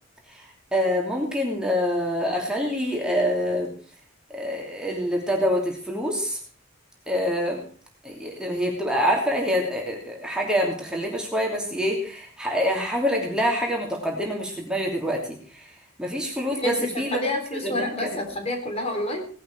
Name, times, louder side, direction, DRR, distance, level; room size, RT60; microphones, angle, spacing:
voice 1, 0.7-3.7 4.3-6.4 7.1-7.6 8.0-15.4 16.0-17.2 17.6-18.2, equal, 5° right, -1 dB, 2.9 m, -26 dB
voice 2, 16.6-19.3, left 1 dB, 30° left, 3 dB, 3.6 m, -28 dB
18.0 x 11.0 x 4.7 m, 0.43 s
head